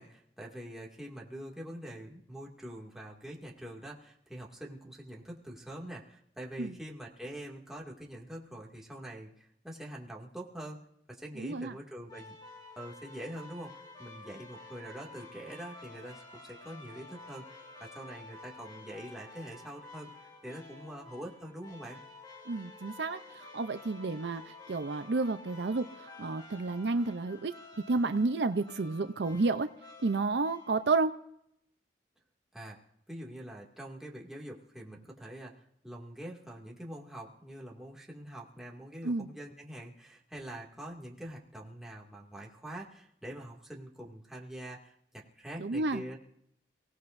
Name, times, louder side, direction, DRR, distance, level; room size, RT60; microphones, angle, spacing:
voice 1, 0.0-10.8 11.1-12.4 12.8-20.1 20.4-22.0 32.5-32.8 33.1-46.2, right 1 dB, 5° right, -3 dB, 2.2 m, -45 dB
voice 2, 11.4-11.7 22.5-27.5 27.9-29.7 30.0-31.1 39.0-39.3 45.6-46.0, right 3 dB, 70° right, 10 dB, 0.6 m, -31 dB
sound 1, 12.1-30.9, left 3 dB, 25° left, 2.2 m, -51 dB
29.5 x 17.0 x 2.6 m, 0.74 s
head